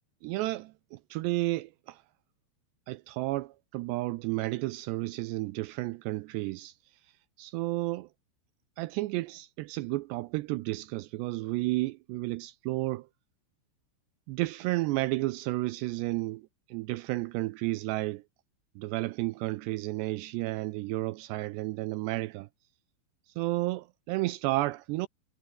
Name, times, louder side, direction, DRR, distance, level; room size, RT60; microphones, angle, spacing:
voice 1, 0.2-2.0 2.9-6.7 7.4-8.1 8.8-13.1 14.3-16.4 16.7-18.2 18.8-22.5 23.4-25.1, right 19 dB, 85° right, 2.5 m, -32 dB
omnidirectional pair, 5.6 m